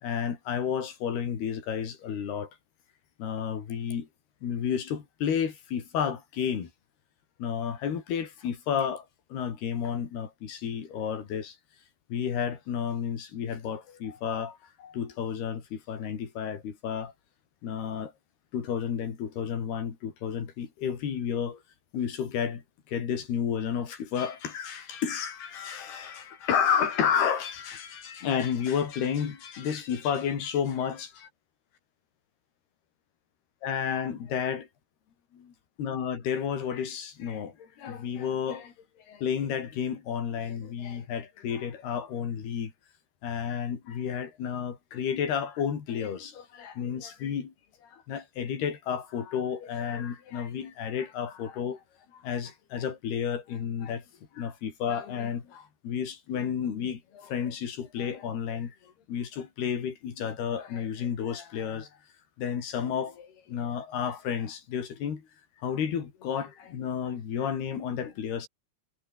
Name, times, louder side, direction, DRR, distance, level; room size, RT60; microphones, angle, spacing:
voice 1, 0.0-2.5 3.2-4.1 4.4-6.7 7.4-11.6 12.1-17.1 17.6-18.1 18.5-21.6 21.9-31.3 33.6-34.7 35.3-38.7 39.1-42.7 43.2-47.5 47.8-51.8 52.1-54.1 54.3-62.0 62.4-65.3 65.6-68.5, left 8 dB, 85° left, 5.4 m, -31 dB
omnidirectional pair, 4.5 m